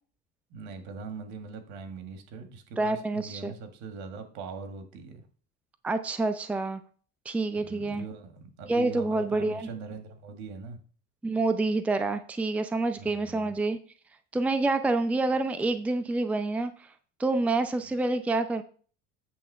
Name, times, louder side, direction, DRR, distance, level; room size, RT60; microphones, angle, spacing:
voice 1, 0.5-5.2 7.6-10.8 13.0-13.5 17.8-17.9, right 4 dB, 65° right, 6 dB, 2.0 m, -41 dB
voice 2, 2.8-3.5 5.8-6.8 7.3-8.1 8.7-9.7 11.2-13.8 14.3-16.7 17.2-18.6, right 2 dB, 5° right, 9 dB, 0.5 m, -27 dB
8.6 x 3.5 x 6.7 m, 0.42 s
supercardioid pair, 120°, 31 cm